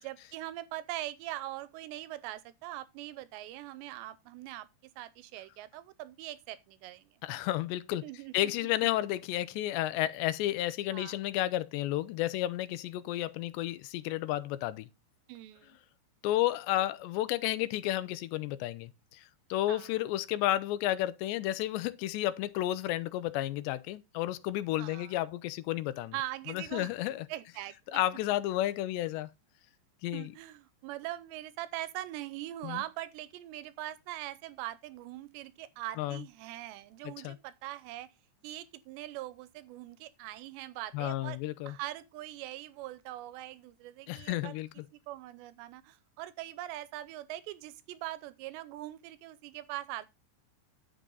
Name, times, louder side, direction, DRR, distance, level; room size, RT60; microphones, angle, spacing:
voice 1, 0.0-4.7 5.0-7.2 8.0-8.7 10.9-11.2 15.3-15.8 19.7-19.9 24.8-25.2 26.1-26.9 27.3-28.0 30.1-38.1 38.4-41.4 41.7-44.6 45.1-50.1, right 15 dB, 80° right, 2.8 m, -42 dB
voice 2, 7.2-8.0 8.3-14.9 16.2-19.2 19.5-26.1 26.5-27.3 27.9-29.3 30.0-30.3 32.6-32.8 36.0-36.2 37.0-37.4 40.9-41.7 44.1-44.7, left 14 dB, 80° left, 2.8 m, -32 dB
10.5 x 8.3 x 3.9 m
omnidirectional pair, 5.2 m